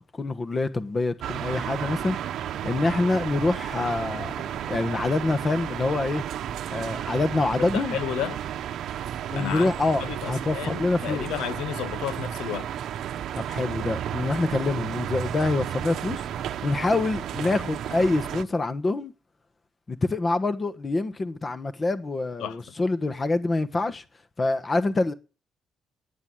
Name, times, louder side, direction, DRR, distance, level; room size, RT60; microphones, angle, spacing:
voice 1, 0.1-2.2 2.6-4.3 4.7-6.2 6.7-8.0 9.3-11.3 13.3-19.1 19.9-24.0 24.4-25.1, left 3 dB, 30° left, 1.3 m, -26 dB
sound 1, 1.2-18.4, right 10 dB, 75° right, 0.8 m, -33 dB
voice 2, 7.6-8.4 9.4-9.7 10.0-12.7 22.4-22.6, left 10 dB, 85° left, 0.9 m, -32 dB
10.5 x 9.6 x 7.6 m
cardioid pair, 90°, 0 cm